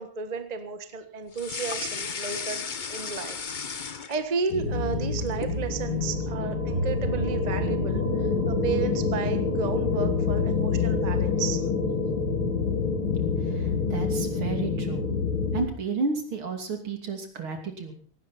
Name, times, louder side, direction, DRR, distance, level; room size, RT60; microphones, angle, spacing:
voice 1, 0.0-3.4 3.7-11.7, right 5 dB, 20° right, 8 dB, 1.3 m, -33 dB
sound 1, 1.3-4.5 4.9-5.6, left 5 dB, 55° left, 0.5 m, -34 dB
sound 2, 4.5-15.6, left 4 dB, 85° left, 3.8 m, -27 dB
voice 2, 13.4-15.1 15.5-17.9, right 4 dB, 80° right, 4 dB, 3.7 m, -32 dB
17.5 x 16.5 x 4.3 m, 0.43 s
omnidirectional pair, 2.3 m